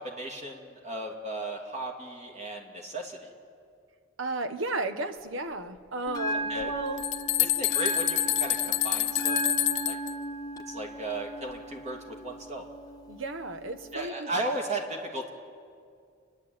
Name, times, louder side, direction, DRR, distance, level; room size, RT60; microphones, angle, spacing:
voice 1, 0.0-3.3 6.3-6.7 7.4-9.4 9.8-10.0 10.7-12.7 13.9-15.3, right 2 dB, 35° right, 2 dB, 2.6 m, -35 dB
voice 2, 4.2-7.3 13.1-14.3, right 2 dB, 75° right, 9 dB, 1.1 m, -34 dB
Bell, 6.1-14.1, right 1 dB, 20° left, 1.0 m, -36 dB
sound 1, 6.6-6.7 7.0-10.1, left 15 dB, 60° left, 0.7 m, -27 dB
29.5 x 11.0 x 8.9 m, 2.3 s
head